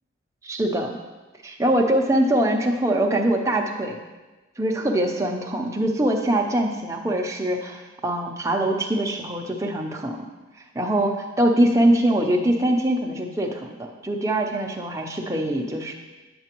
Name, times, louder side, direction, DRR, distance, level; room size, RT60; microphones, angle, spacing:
voice 1, 0.4-1.0 1.4-4.0 4.6-10.3 10.7-15.9, right 1 dB, 15° right, 1 dB, 0.6 m, -23 dB
9.2 x 6.8 x 3.0 m, 1.2 s
head